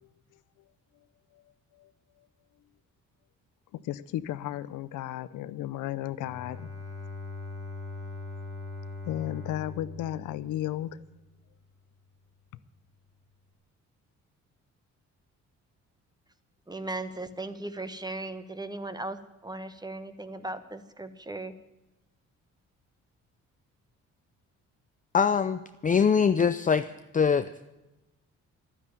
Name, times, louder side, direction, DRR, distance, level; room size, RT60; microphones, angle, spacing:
voice 1, 3.7-6.7 9.1-11.0, left 13 dB, 85° left, 15 dB, 0.7 m, -34 dB
Bowed string instrument, 6.1-11.1, left 3 dB, 10° left, 3.2 m, -41 dB
voice 2, 16.7-19.2 19.4-21.5, right 2 dB, 15° right, 11 dB, 1.2 m, -37 dB
voice 3, 25.1-26.9 27.1-27.7, left 6 dB, 25° left, 10 dB, 0.6 m, -23 dB
12.0 x 10.0 x 9.0 m, 0.97 s
cardioid pair, 90°, 30 cm